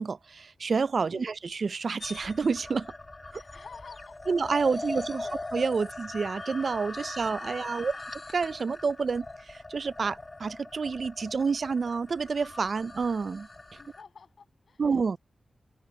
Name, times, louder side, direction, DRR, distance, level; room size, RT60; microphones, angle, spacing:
voice 1, 0.0-2.9 3.3-3.4 4.3-5.2 5.5-7.9 8.3-13.5 14.8-15.2, right 5 dB, 60° right, 0.4 m, -29 dB
sound 1, 2.0-14.0, left 2 dB, 30° left, 1.1 m, -41 dB
voice 2, 3.3-4.4 4.7-5.4 7.5-8.1 13.8-15.2, left 5 dB, 70° left, 7.2 m, -52 dB
open air
cardioid pair, 70°, 0 cm